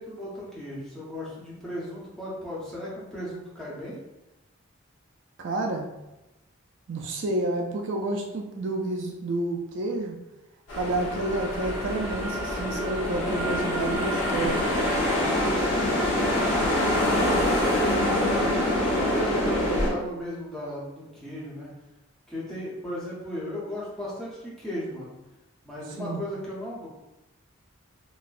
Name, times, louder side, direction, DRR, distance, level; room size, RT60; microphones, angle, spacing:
voice 1, 0.0-4.0 15.0-16.5 17.0-21.7 22.3-25.2 25.6-26.9, equal, ahead, -8 dB, 0.8 m, -36 dB
voice 2, 5.4-5.9 6.9-10.2 10.8-14.6 26.0-26.2, right 2 dB, 60° right, 1 dB, 0.4 m, -29 dB
sound 1, 10.7-19.9, left 1 dB, 65° left, 1.0 m, -25 dB
4.0 x 2.1 x 2.4 m, 0.97 s
head